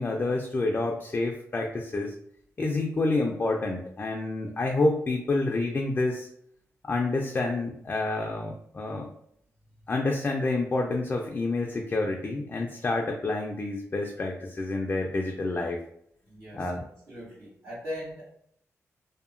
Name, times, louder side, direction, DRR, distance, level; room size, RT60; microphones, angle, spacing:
voice 1, 0.0-2.1 2.6-6.3 6.8-9.1 9.9-15.8 16.5-16.8, left 2 dB, 35° left, 1 dB, 0.3 m, -28 dB
voice 2, 16.3-18.3, equal, 65° right, -11 dB, 1.3 m, -40 dB
2.8 x 2.1 x 2.5 m, 0.69 s
cardioid pair, 95°, 6 cm